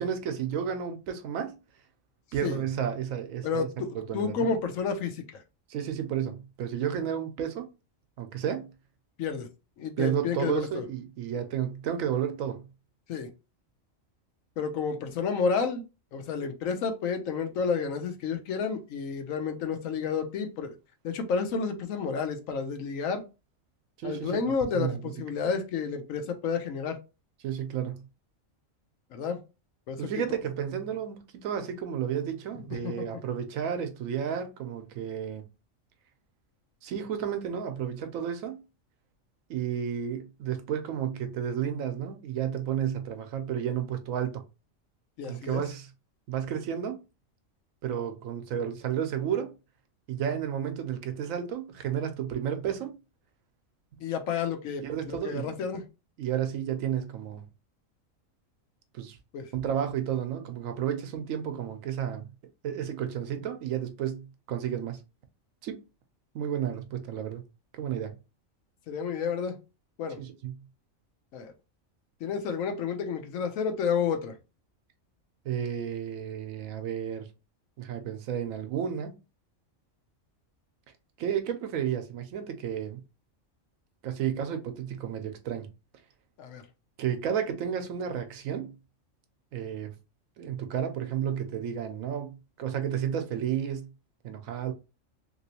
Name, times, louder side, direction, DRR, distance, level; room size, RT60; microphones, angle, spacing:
voice 1, 0.0-1.6 2.3-4.5 5.7-7.7 8.2-8.7 10.0-12.7 24.0-24.4 24.7-25.1 27.4-28.1 30.0-35.4 36.8-38.6 39.5-44.4 45.3-45.9 46.3-47.0 47.8-49.5 50.1-53.0 54.8-55.6 56.2-57.5 58.9-59.2 59.5-62.3 62.6-65.0 65.6-65.8 66.3-67.4 67.7-68.2 70.2-70.6 75.4-77.3 77.8-79.1 81.2-83.0 84.0-85.7 87.0-88.7 89.5-89.9 90.4-93.9 94.2-94.7, right 9 dB, 85° right, 1.0 m, -32 dB
voice 2, 3.4-5.2 9.2-9.5 9.8-10.8 13.1-13.3 14.6-15.8 16.1-20.7 21.0-23.3 24.0-27.0 29.1-29.4 29.9-30.0 32.8-33.0 45.2-45.6 54.0-55.9 59.3-59.5 68.9-69.6 70.0-70.2 71.3-71.5 72.2-74.3 86.4-86.6, left 5 dB, 80° left, 1.1 m, -30 dB
3.0 x 2.9 x 2.8 m
omnidirectional pair, 1.4 m